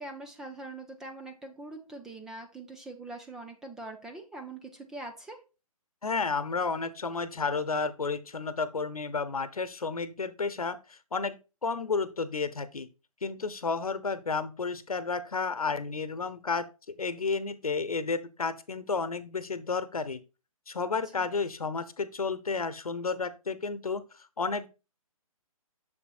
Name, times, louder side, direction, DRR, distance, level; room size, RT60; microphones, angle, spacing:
voice 1, 0.0-5.4 21.2-21.3, right 2 dB, 5° right, 0.3 m, -43 dB
voice 2, 6.0-11.4 11.6-12.9 13.2-16.7 17.0-20.2 20.7-24.0 24.4-24.7, left 4 dB, 75° left, 0.9 m, -31 dB
7.2 x 6.9 x 2.3 m
figure-of-eight pair, 140°, 19 cm